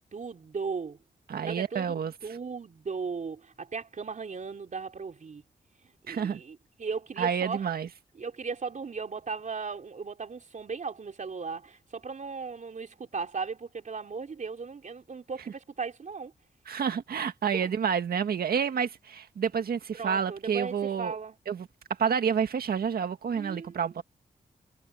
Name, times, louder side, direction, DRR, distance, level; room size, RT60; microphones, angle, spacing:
voice 1, 0.1-1.0 1.5-2.0 2.2-5.4 6.1-7.7 8.2-16.3 17.5-17.7 19.9-21.4 23.3-24.0, right 5 dB, 55° right, 3.8 m, -37 dB
voice 2, 1.3-2.1 6.1-6.4 7.2-7.9 16.7-21.1 21.5-21.7 22.0-24.0, right 7 dB, 75° right, 1.8 m, -29 dB
cardioid pair, 75°, 16 cm